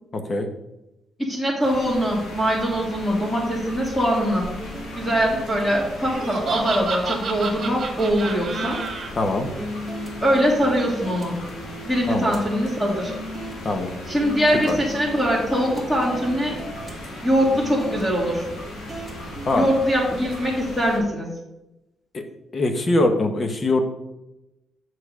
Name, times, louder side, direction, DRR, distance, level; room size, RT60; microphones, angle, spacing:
voice 1, 0.1-0.5 9.2-9.5 12.1-12.3 13.6-13.9 14.7-14.8 19.5-19.7 22.1-22.2 22.5-23.8, left 2 dB, 40° left, 6 dB, 1.0 m, -22 dB
voice 2, 1.2-4.5 4.9-8.8 10.2-11.3 11.8-13.1 14.1-16.6 17.2-18.5 19.5-21.3, equal, 10° left, -5 dB, 2.2 m, -22 dB
sound 1, 1.6-21.0, left 1 dB, 85° left, 2.2 m, -38 dB
sound 2, 1.7-19.8, right 1 dB, 5° right, 1.7 m, -38 dB
Laughter, 6.1-9.1, right 4 dB, 45° right, 1.8 m, -29 dB
7.1 x 6.0 x 4.9 m, 0.94 s
cardioid pair, 110°, 0 cm